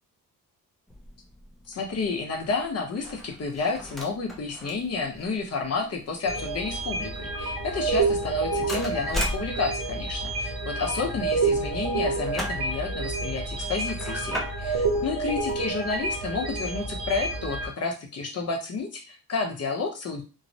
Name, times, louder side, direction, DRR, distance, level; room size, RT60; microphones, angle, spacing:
sound 1, 0.9-16.3, equal, ahead, 0.3 m, -40 dB
voice 1, 1.7-20.2, left 4 dB, 45° left, 2 dB, 0.7 m, -31 dB
sound 2, 6.3-17.7, right 3 dB, 80° right, 0.8 m, -29 dB
3.0 x 2.0 x 2.7 m, 0.32 s
wide cardioid pair, 175°, 37 cm